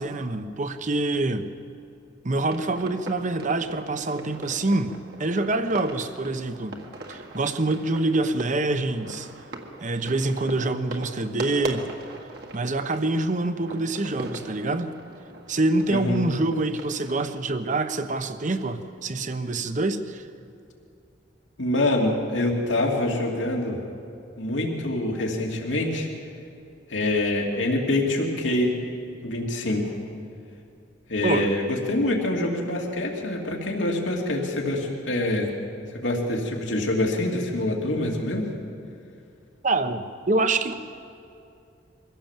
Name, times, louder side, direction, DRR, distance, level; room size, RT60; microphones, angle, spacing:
voice 1, 0.0-1.5 2.2-4.9 5.2-6.8 7.1-9.3 9.8-11.9 12.5-15.0 15.5-20.2 31.2-31.5 39.6-40.7, right 2 dB, 45° right, 10 dB, 1.0 m, -26 dB
sound 1, 2.4-17.3, right 2 dB, 60° right, 1.8 m, -40 dB
voice 2, 15.9-16.2 21.6-23.8 24.4-26.1 26.9-28.7 29.2-29.8 31.1-31.6 31.9-35.5 35.9-38.4, left 1 dB, 90° left, -1 dB, 2.8 m, -25 dB
23.5 x 16.0 x 7.5 m, 2.5 s
head